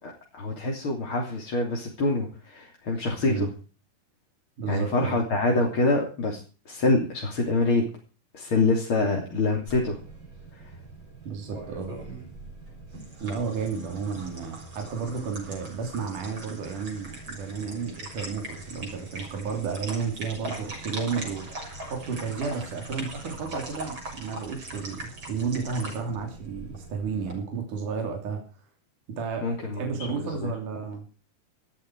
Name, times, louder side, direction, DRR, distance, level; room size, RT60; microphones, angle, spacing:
voice 1, 0.0-3.5 4.7-6.4 6.7-7.9 8.3-10.0 29.4-29.8 30.2-30.5, left 2 dB, 40° left, 1 dB, 3.8 m, -25 dB
voice 2, 4.6-5.2 9.0-9.2 11.2-12.0 13.2-28.4 29.1-31.1, right 5 dB, 70° right, 3 dB, 4.6 m, -32 dB
sound 1, 9.7-27.3, right 2 dB, 35° right, 7.5 m, -41 dB
18.5 x 13.5 x 4.8 m, 0.37 s
omnidirectional pair, 3.8 m